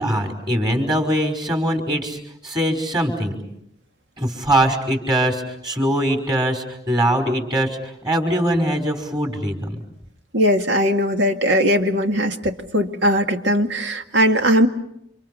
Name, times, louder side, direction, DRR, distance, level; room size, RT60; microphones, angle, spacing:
voice 1, 0.0-3.4 4.2-7.8 8.0-9.8, right 1 dB, 25° right, 4 dB, 5.3 m, -22 dB
voice 2, 10.3-14.7, equal, 85° right, 5 dB, 2.1 m, -19 dB
29.5 x 27.5 x 5.6 m, 0.77 s
head